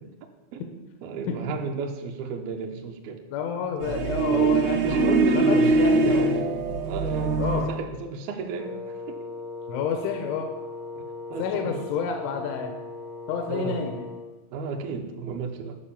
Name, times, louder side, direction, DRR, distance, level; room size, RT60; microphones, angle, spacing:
voice 1, 0.0-0.6 1.0-3.2 3.6-3.7 4.3-6.6 6.8-9.2 11.0-11.9 13.5-13.8 14.5-15.8, right 5 dB, 70° right, 2 dB, 2.5 m, -33 dB
voice 2, 3.3-6.2 7.4-7.7 9.7-10.5 11.4-12.7 13.3-14.0, left 7 dB, 85° left, 4 dB, 3.4 m, -29 dB
sound 1, 3.8-7.7, right 3 dB, 90° right, 4.1 m, -22 dB
Wind instrument woodwind instrument, 8.6-14.4, left 3 dB, 45° right, 0.5 m, -38 dB
11.0 x 6.3 x 8.5 m, 1.1 s
omnidirectional pair, 5.3 m